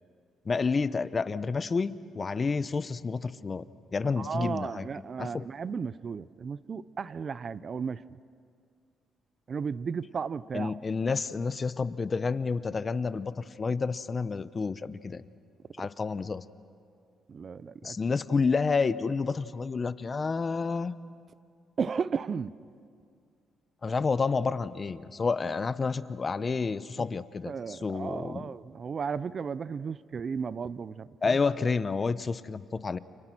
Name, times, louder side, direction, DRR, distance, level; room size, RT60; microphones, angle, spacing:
voice 1, 0.5-3.7 3.9-4.8 5.2-5.4 10.5-15.3 15.8-16.4 17.8-21.0 23.8-28.4 31.2-33.0, left 4 dB, 35° left, 14 dB, 0.8 m, -29 dB
voice 2, 4.2-8.0 9.5-10.8 17.3-18.0 21.8-22.5 27.0-27.1 27.4-31.4, right 6 dB, 45° right, 18 dB, 0.6 m, -34 dB
29.5 x 28.0 x 6.1 m, 2.3 s
cardioid pair, 90°, 0 cm